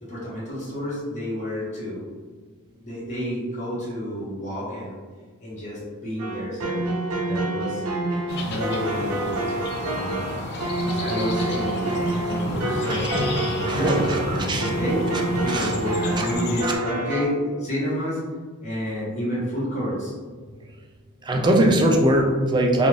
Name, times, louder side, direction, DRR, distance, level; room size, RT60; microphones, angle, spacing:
voice 1, 0.0-2.0 2.8-5.0 5.4-6.9 7.2-7.8 8.2-9.4 9.9-10.3 10.8-13.3 13.5-15.0 15.4-18.2 18.6-20.1 20.6-20.7, equal, 35° left, -9 dB, 1.1 m, -30 dB
sound 1, 6.2-17.2, right 2 dB, 80° right, 0.5 m, -27 dB
sound 2, 8.3-16.8, left 2 dB, 50° left, 0.4 m, -31 dB
voice 2, 12.5-13.4 13.7-14.7 15.5-15.7 16.2-16.3 16.6-16.8 21.2-22.9, right 1 dB, 20° right, 1 dB, 0.3 m, -22 dB
2.4 x 2.4 x 3.1 m, 1.5 s
head